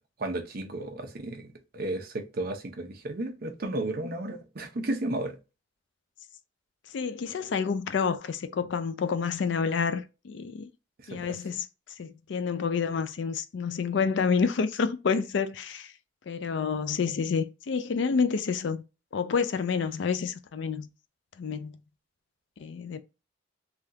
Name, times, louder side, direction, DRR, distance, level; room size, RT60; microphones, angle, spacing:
voice 1, 0.2-5.4 11.0-11.4, right 2 dB, 50° right, 0.7 m, -33 dB
voice 2, 6.9-10.7 11.1-11.7 12.0-15.9 16.3-18.8 19.1-20.9 21.4-21.8 22.6-23.0, left 5 dB, 60° left, 0.4 m, -28 dB
3.4 x 2.4 x 2.7 m
head